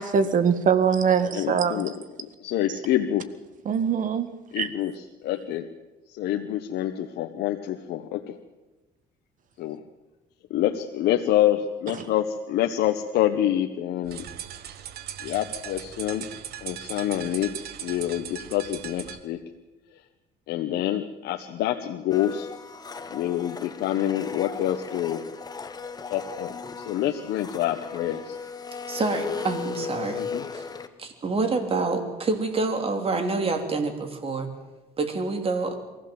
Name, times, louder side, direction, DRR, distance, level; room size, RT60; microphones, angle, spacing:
voice 1, 0.0-2.0 2.7-2.8 3.7-4.7 11.9-12.1, right 6 dB, 50° right, 10 dB, 1.8 m, -23 dB
voice 2, 1.4-1.9 2.4-3.3 4.5-4.9 5.2-5.7 6.2-8.3 9.6-9.8 10.5-14.2 15.2-16.2 16.6-17.5 17.8-19.4 20.5-22.5 23.1-25.2 26.1-26.5 26.9-28.3 30.3-30.4, left 12 dB, 75° left, 4 dB, 1.2 m, -26 dB
sound 1, 14.0-19.2, right 10 dB, 70° right, 1.5 m, -38 dB
Domestic sounds home sounds, 22.1-30.9, left 5 dB, 25° left, 1.4 m, -36 dB
voice 3, 28.9-30.7 31.0-34.5 35.0-35.7, right 3 dB, 35° right, 4 dB, 3.4 m, -27 dB
23.5 x 15.5 x 7.8 m, 1.1 s
cardioid pair, 110°, 17 cm